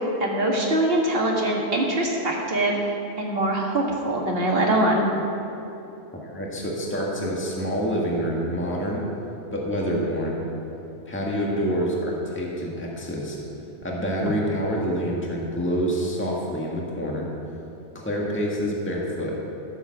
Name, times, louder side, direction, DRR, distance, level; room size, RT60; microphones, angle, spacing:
voice 1, 0.2-5.1, right 1 dB, 50° right, -2 dB, 2.1 m, -23 dB
voice 2, 6.1-9.0 9.5-10.4 11.0-13.4 13.8-17.3 17.9-19.3, equal, 10° left, -3 dB, 1.7 m, -27 dB
14.5 x 7.3 x 7.2 m, 2.9 s
omnidirectional pair, 1.3 m